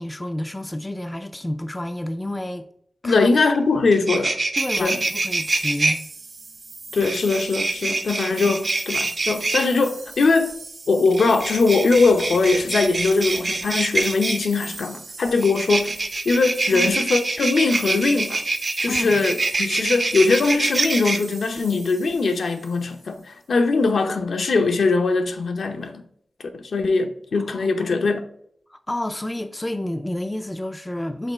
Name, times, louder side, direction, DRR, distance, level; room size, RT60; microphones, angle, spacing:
voice 1, 0.0-2.7 3.0-3.3 4.6-6.1 16.7-16.9 18.9-19.3 27.4-28.0 28.7-31.3, left 1 dB, 15° left, 0.3 m, -30 dB
voice 2, 3.0-4.4 4.8-5.0 6.9-10.6 10.9-16.0 16.2-18.4 18.8-26.0 26.5-28.2, left 3 dB, 75° left, 0.7 m, -21 dB
sound 1, 3.5-3.6 3.9-5.9 7.0-9.6 11.1-14.5 15.4-21.2, right 3 dB, 40° right, 0.6 m, -25 dB
sound 2, 4.6-23.2, right 3 dB, 55° right, 1.1 m, -40 dB
5.7 x 3.8 x 4.3 m
wide cardioid pair, 140°, 0 cm